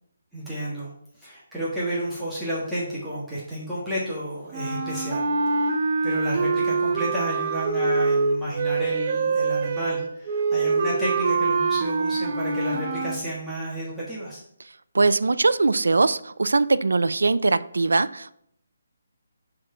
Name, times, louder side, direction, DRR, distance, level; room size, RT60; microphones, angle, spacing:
voice 1, 0.3-0.9 1.2-5.3 5.5-14.4, right 1 dB, ahead, -11 dB, 1.4 m, -31 dB
sound 1, 4.5-13.2, right 4 dB, 40° right, 0.8 m, -24 dB
voice 2, 14.9-18.4, right 3 dB, 85° right, 14 dB, 0.4 m, -21 dB
6.2 x 3.7 x 5.6 m, 0.70 s
hypercardioid pair, 165°, 0 cm